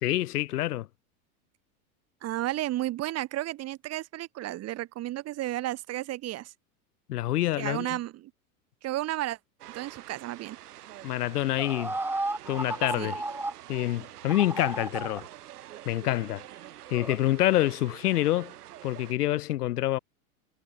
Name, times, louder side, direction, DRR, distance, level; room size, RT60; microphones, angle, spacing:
voice 1, 0.0-0.9 7.1-8.0 11.0-11.9 12.5-13.2 13.7-15.3 15.9-16.4 16.9-18.5 18.8-20.0, left 15 dB, 85° left, 1.7 m, -27 dB
voice 2, 2.2-6.5 7.6-8.3 8.8-9.4 9.7-10.6 13.0-13.1, right 15 dB, 35° right, 3.6 m, -33 dB
sound 1, 9.6-19.1, right 13 dB, 85° right, 7.1 m, -47 dB
sound 2, 11.6-13.5 14.3-15.2 16.9-17.2, right 2 dB, 5° right, 1.5 m, -33 dB
supercardioid pair, 140°, 45 cm